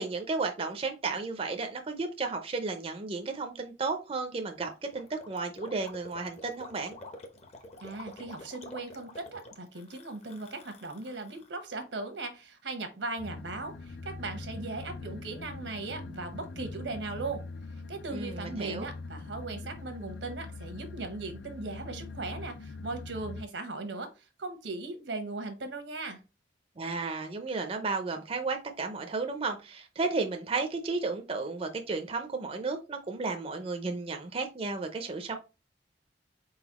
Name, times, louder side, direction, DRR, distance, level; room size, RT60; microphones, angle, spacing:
voice 1, 0.0-7.0 18.1-18.9 26.8-35.4, right 3 dB, 30° right, 5 dB, 0.5 m, -33 dB
Gurgling, 4.6-11.5, left 2 dB, 35° left, 0.8 m, -48 dB
voice 2, 7.8-17.4 17.9-26.2, right 3 dB, 80° right, 7 dB, 1.1 m, -38 dB
sound 1, 13.2-23.4, left 3 dB, 80° left, 0.5 m, -43 dB
4.4 x 4.0 x 2.9 m, 0.29 s
head